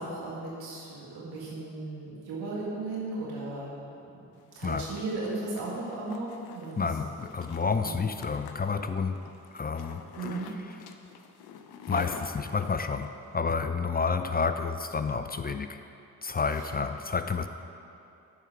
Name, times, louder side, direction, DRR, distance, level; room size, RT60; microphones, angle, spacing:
voice 1, 0.0-3.8 4.6-6.8 7.8-8.0 10.2-10.5 16.6-16.7, right 2 dB, 85° right, -5 dB, 1.9 m, -36 dB
Zipper (clothing), 4.4-13.1, left 6 dB, 80° left, 0.6 m, -46 dB
voice 2, 6.8-9.2 9.5-10.0 11.9-15.8 16.2-17.5, left 5 dB, 25° left, 8 dB, 0.4 m, -30 dB
9.1 x 4.7 x 5.8 m, 2.6 s
supercardioid pair, 45°, 37 cm